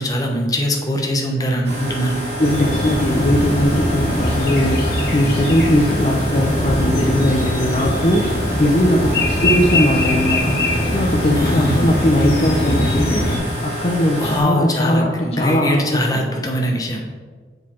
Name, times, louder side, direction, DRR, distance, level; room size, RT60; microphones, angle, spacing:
voice 1, 0.0-2.2 11.3-11.9 14.2-17.0, equal, 20° left, 1 dB, 0.8 m, -22 dB
sound 1, 1.6-14.4, equal, 65° right, 2.0 m, -28 dB
sound 2, 2.4-13.4, left 1 dB, 60° left, 1.6 m, -21 dB
voice 2, 2.4-8.3 8.6-16.2, left 1 dB, 35° left, 0 dB, 0.5 m, -19 dB
7.4 x 3.9 x 4.3 m, 1.5 s
head